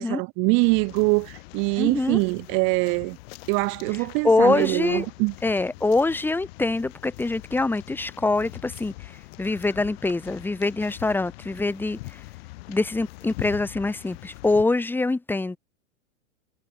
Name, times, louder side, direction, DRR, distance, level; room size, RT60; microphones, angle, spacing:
voice 1, 0.0-3.2 3.5-5.3, right 32 dB, 30° right, 0.6 m, -23 dB
sound 1, 0.6-14.6, left 22 dB, 50° left, 2.6 m, -43 dB
voice 2, 1.8-2.2 4.2-5.1 5.4-12.2 12.7-15.6, left 3 dB, 5° left, 1.6 m, -24 dB
hypercardioid pair, 120°, 39 cm